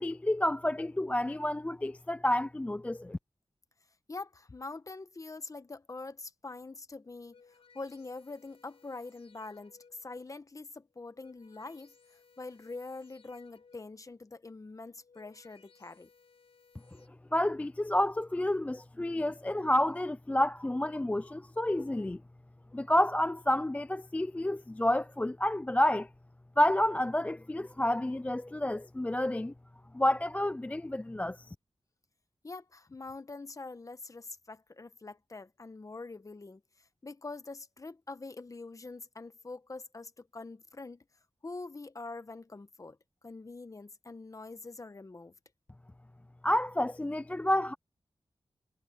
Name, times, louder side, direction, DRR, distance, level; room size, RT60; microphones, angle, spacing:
voice 1, 0.0-3.2 17.3-22.2 22.7-26.1 26.6-29.5 29.9-31.5 46.4-47.7, left 1 dB, 15° left, 0.4 m, -29 dB
voice 2, 4.1-7.4 7.7-11.9 12.4-16.1 32.4-36.6 37.0-41.0 41.4-43.0 43.2-45.3, left 3 dB, 35° left, 1.1 m, -44 dB
sound 1, 7.0-10.2 10.9-14.1 14.8-17.1, left 5 dB, 85° left, 6.0 m, -63 dB
wide cardioid pair, 95°, 10 cm